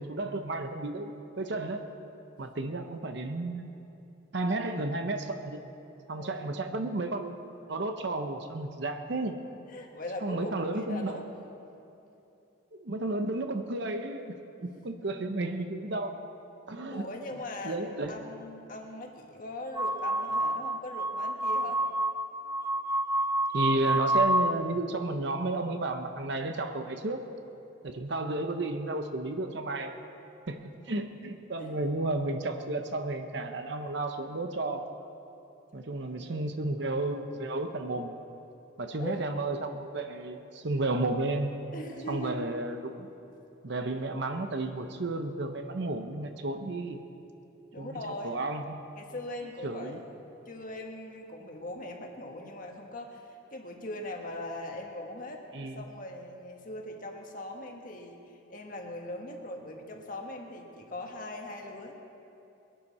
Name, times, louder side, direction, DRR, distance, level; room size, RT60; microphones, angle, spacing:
voice 1, 0.0-1.9 2.4-3.7 4.3-5.6 6.1-9.4 10.2-11.1 12.7-14.3 14.6-16.3 16.7-17.0 17.6-18.2 23.5-27.3 27.8-30.0 30.5-30.6 30.9-34.9 35.7-38.1 38.8-41.6 42.1-43.1 43.6-47.0 47.8-48.8 49.6-50.0 55.5-55.8, right 2 dB, 55° right, 6 dB, 0.8 m, -32 dB
voice 2, 6.1-6.4 9.7-11.2 14.6-14.7 16.9-21.8 30.5-30.8 31.6-31.8 35.7-36.5 39.0-39.3 41.7-42.4 46.6-47.1 47.7-48.4 49.0-50.2 50.4-61.9, left 1 dB, 40° left, 1 dB, 1.5 m, -41 dB
sound 1, 19.8-24.6, right 1 dB, 10° right, 0.3 m, -28 dB
21.5 x 11.0 x 4.3 m, 2.8 s
head